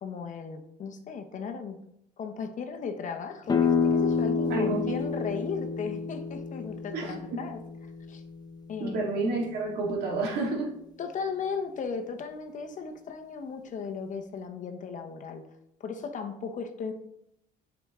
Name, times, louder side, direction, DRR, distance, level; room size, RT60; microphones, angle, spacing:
voice 1, 0.0-1.8 2.2-7.6 8.1-8.2 8.7-9.0 11.0-15.5 15.8-16.9, left 6 dB, 50° left, 5 dB, 0.9 m, -36 dB
sound 1, 3.5-9.1, left 5 dB, 25° left, 0.7 m, -29 dB
voice 2, 4.5-4.9 6.9-7.4 8.8-10.7, right 2 dB, 75° right, -1 dB, 2.2 m, -30 dB
7.2 x 4.9 x 3.7 m, 0.77 s
cardioid pair, 110°, 17 cm